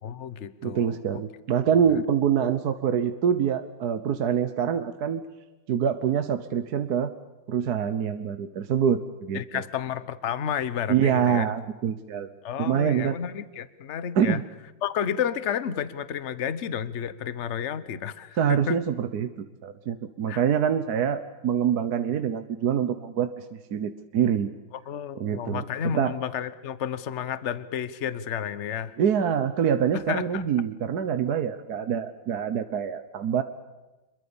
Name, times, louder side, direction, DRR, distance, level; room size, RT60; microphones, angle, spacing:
voice 1, 0.0-1.2 9.3-11.5 12.4-14.4 14.8-18.8 20.3-20.4 24.9-29.0 29.9-30.5, left 8 dB, 45° left, 15 dB, 1.1 m, -31 dB
voice 2, 0.6-5.2 5.7-7.1 7.5-9.6 10.9-12.3 12.6-13.2 14.1-14.4 18.4-19.3 19.6-24.5 25.1-26.1 29.0-33.4, right 8 dB, 55° right, 9 dB, 1.4 m, -25 dB
27.0 x 22.5 x 7.1 m, 1.1 s
omnidirectional pair, 2.2 m